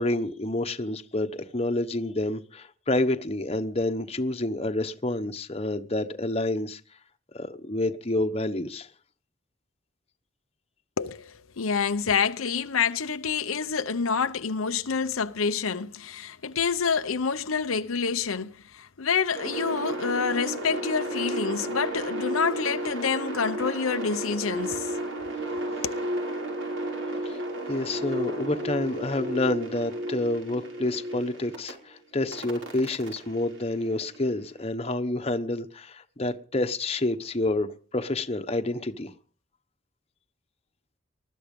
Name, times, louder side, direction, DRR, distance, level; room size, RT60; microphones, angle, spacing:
voice 1, 0.0-6.8 7.3-8.9 27.2-27.4 27.7-39.1, left 2 dB, 30° left, 1.1 m, -28 dB
voice 2, 11.0-24.9 25.8-26.0, left 5 dB, 90° left, 0.8 m, -27 dB
sound 1, 19.3-31.7 32.3-34.4, right 1 dB, 65° right, 5.2 m, -33 dB
20.5 x 13.0 x 5.4 m
head